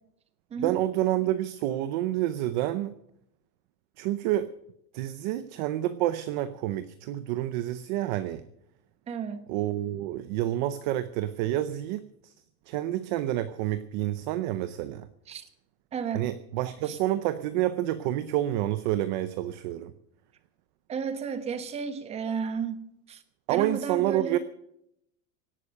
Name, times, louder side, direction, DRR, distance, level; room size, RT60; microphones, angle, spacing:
voice 1, 0.6-2.9 4.0-4.5 4.9-8.4 9.5-12.3 12.7-15.1 16.1-19.9 23.5-24.4, right 13 dB, 30° right, 13 dB, 0.6 m, -28 dB
voice 2, 9.1-9.4 15.3-15.4 15.9-16.3 16.9-17.0 20.9-23.2 23.5-24.4, right 6 dB, 15° right, 11 dB, 1.1 m, -33 dB
17.5 x 11.0 x 6.5 m, 0.75 s
supercardioid pair, 180°, 44 cm